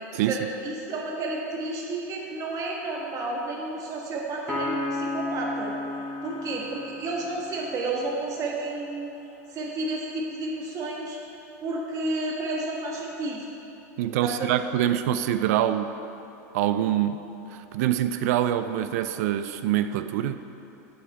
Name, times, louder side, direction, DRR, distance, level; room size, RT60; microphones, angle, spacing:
voice 1, 0.3-5.7 6.2-9.1 9.5-11.2 11.6-13.5 14.2-14.5, right 2 dB, 40° right, -2 dB, 1.3 m, -31 dB
Piano, 4.5-8.1, left 2 dB, 10° left, 1.4 m, -33 dB
voice 2, 14.0-15.9 16.5-17.2 17.5-20.4, right 11 dB, 70° right, 11 dB, 0.3 m, -25 dB
8.4 x 3.9 x 4.2 m, 2.9 s
hypercardioid pair, 105°, 9 cm